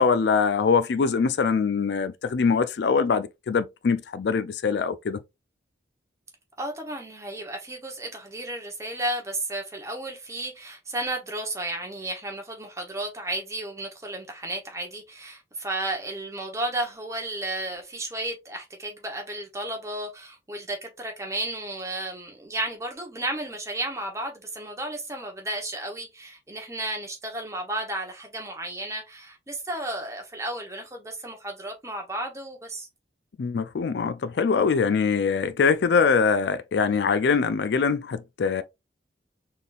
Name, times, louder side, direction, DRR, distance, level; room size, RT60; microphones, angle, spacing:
voice 1, 0.0-5.2 33.4-38.6, left 5 dB, 70° left, 0.4 m, -23 dB
voice 2, 6.6-32.9, right 1 dB, 15° right, 1.1 m, -33 dB
4.1 x 3.5 x 2.5 m
head